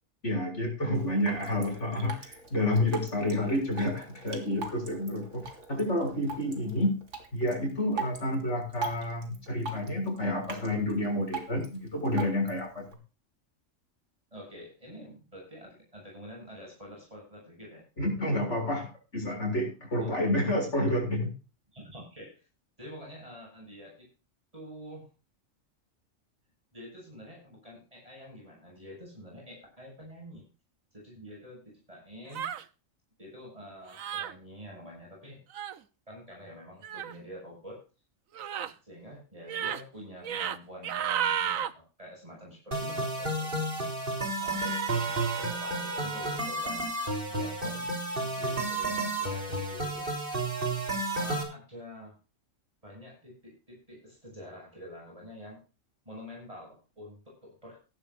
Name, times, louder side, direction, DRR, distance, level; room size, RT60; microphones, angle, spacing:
voice 1, 0.2-6.9 7.3-12.9 18.0-21.3, left 1 dB, 60° left, 1 dB, 7.2 m, -29 dB
voice 2, 0.8-1.1 14.3-17.9 20.0-20.1 21.7-22.4 22.8-24.1 24.5-25.1 26.7-30.5 30.9-32.5 33.2-35.4 36.1-37.8 38.6-43.9 44.4-46.9 47.3-47.9 48.2-50.2 51.1-52.2 52.8-55.6 56.1-57.8, equal, 25° right, -3 dB, 7.3 m, -47 dB
Drip, 0.9-12.9, right 4 dB, 65° right, 3.1 m, -42 dB
sound 1, 32.3-32.7 33.9-34.3 35.5-35.8 36.8-37.1 38.3-38.7 39.4-39.8 40.2-40.6 40.8-41.7 44.5-46.4, right 9 dB, 90° right, 1.3 m, -33 dB
sound 2, 42.7-51.4, right 2 dB, 40° right, 4.1 m, -31 dB
17.0 x 12.5 x 2.6 m, 0.33 s
omnidirectional pair, 1.3 m